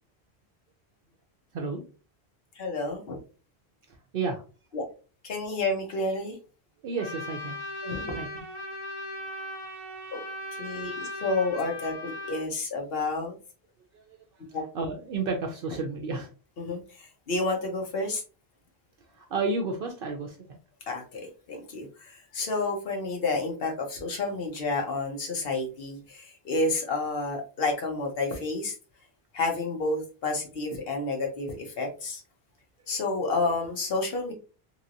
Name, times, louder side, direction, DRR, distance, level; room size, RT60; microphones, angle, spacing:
voice 1, 2.6-3.2 4.7-4.8 5.2-6.4 7.8-8.2 10.1-10.2 10.6-13.3 14.5-14.6 16.6-18.2 20.9-21.2 21.5-28.7 29.3-32.2 32.9-34.3, left 3 dB, 70° left, 1 dB, 1.1 m, -30 dB
voice 2, 6.8-7.6 8.2-8.4 13.9-14.2 14.5-16.3 19.1-20.4, right 3 dB, 65° right, 4 dB, 0.7 m, -31 dB
Trumpet, 7.0-12.4, left 1 dB, 25° right, 1.2 m, -38 dB
3.3 x 2.9 x 2.5 m, 0.35 s
omnidirectional pair, 1.1 m